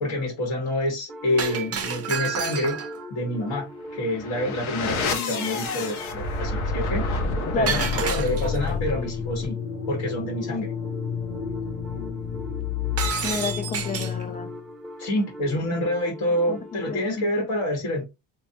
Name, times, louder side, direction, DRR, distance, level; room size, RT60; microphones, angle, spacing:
voice 1, 0.0-2.8 3.1-7.1 7.5-9.6 9.9-10.7 15.0-18.0, left 1 dB, 50° left, 1.2 m, -27 dB
sound 1, 1.1-17.1, equal, ahead, 0.9 m, -40 dB
Shatter, 1.4-3.0 7.7-8.7 13.0-14.2, right 7 dB, 30° right, 0.6 m, -29 dB
sound 2, 3.9-14.6, left 5 dB, 85° left, 0.8 m, -29 dB
voice 2, 13.2-14.5 16.5-17.0, left 4 dB, 15° left, 0.5 m, -30 dB
3.3 x 2.3 x 2.7 m
cardioid pair, 105°, 47 cm